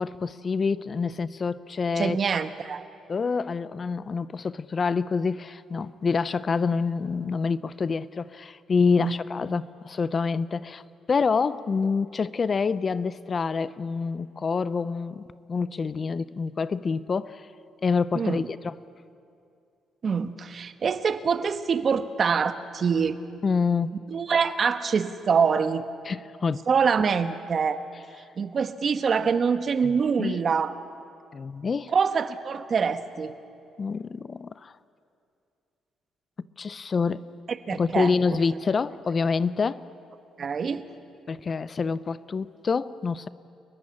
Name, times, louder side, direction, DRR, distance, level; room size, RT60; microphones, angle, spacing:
voice 1, 0.0-2.2 3.1-10.8 11.1-17.5 17.8-18.7 23.4-23.9 26.1-26.6 29.8-29.9 30.2-30.4 31.3-31.9 33.8-34.7 36.6-37.2 37.7-39.8 41.3-43.3, left 5 dB, 40° left, 16 dB, 0.6 m, -27 dB
voice 2, 2.0-2.8 9.0-9.2 18.1-18.5 20.0-23.2 24.1-25.8 26.7-27.8 28.4-30.7 31.9-33.3 37.7-38.1 40.4-40.8, right 6 dB, 50° right, 10 dB, 1.3 m, -25 dB
30.0 x 15.5 x 9.9 m, 2.5 s
cardioid pair, 90°, 0 cm